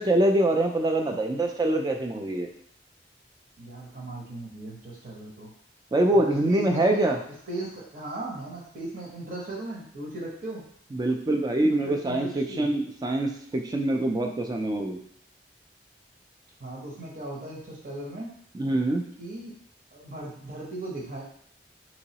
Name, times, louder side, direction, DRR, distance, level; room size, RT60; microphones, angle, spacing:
voice 1, 0.0-2.5 5.9-7.2 10.9-15.0 18.5-19.0, right 1 dB, 20° right, 3 dB, 0.3 m, -24 dB
voice 2, 3.6-5.5 6.1-7.1 7.5-10.6 11.7-12.7 16.6-18.3 19.2-19.5 19.9-21.2, right 2 dB, 50° right, -3 dB, 0.9 m, -37 dB
3.8 x 3.0 x 2.8 m, 0.64 s
head